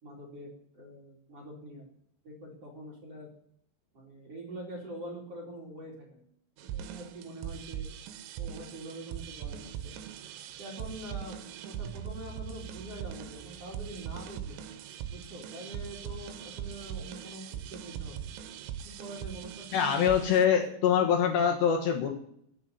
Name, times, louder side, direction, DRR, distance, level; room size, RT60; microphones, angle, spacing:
voice 1, 0.0-1.8 2.2-3.3 3.9-6.2 6.6-7.9 8.4-9.9 10.6-14.6 15.1-18.2 18.8-20.4 20.7-20.9, right 1 dB, 35° right, -2 dB, 3.3 m, -44 dB
sound 1, 6.6-20.5, right 9 dB, 90° right, 3.7 m, -41 dB
voice 2, 19.7-22.1, left 8 dB, 65° left, 2 dB, 3.3 m, -24 dB
15.0 x 8.1 x 9.3 m, 0.68 s
omnidirectional pair, 5.8 m